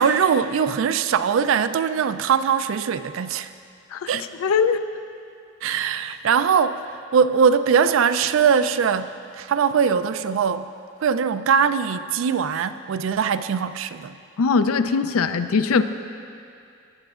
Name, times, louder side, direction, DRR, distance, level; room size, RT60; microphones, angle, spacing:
voice 1, 0.0-3.5 4.1-4.3 5.6-10.7 11.0-14.2, right 6 dB, 65° right, 12 dB, 0.3 m, -21 dB
voice 2, 4.4-4.8 14.4-15.8, left 5 dB, 80° left, 11 dB, 0.4 m, -20 dB
18.0 x 7.8 x 2.4 m, 2.4 s
head